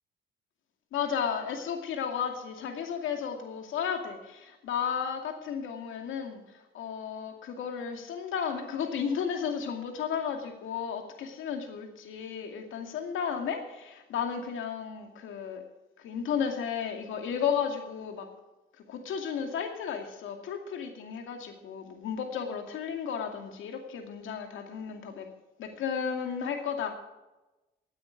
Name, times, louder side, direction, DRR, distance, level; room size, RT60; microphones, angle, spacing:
voice 1, 0.9-15.6 16.0-18.3 18.9-25.3 25.6-26.9, left 7 dB, 80° left, 4 dB, 2.4 m, -33 dB
16.5 x 9.4 x 5.2 m, 1.1 s
cardioid pair, 90°, 20 cm